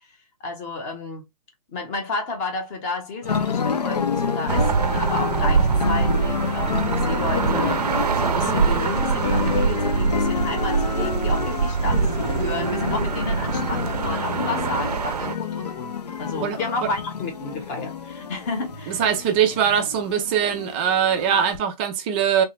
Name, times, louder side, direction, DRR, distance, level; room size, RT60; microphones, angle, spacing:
voice 1, 0.4-1.2 1.7-19.0, left 3 dB, 25° left, 0.9 m, -31 dB
sound 1, 3.2-21.6, left 6 dB, 85° left, 0.8 m, -28 dB
sound 2, 4.5-15.3, right 5 dB, 80° right, 0.6 m, -24 dB
voice 2, 18.9-22.4, right 8 dB, 15° right, 0.4 m, -22 dB
3.3 x 2.4 x 2.9 m
hypercardioid pair, 150°, 20 cm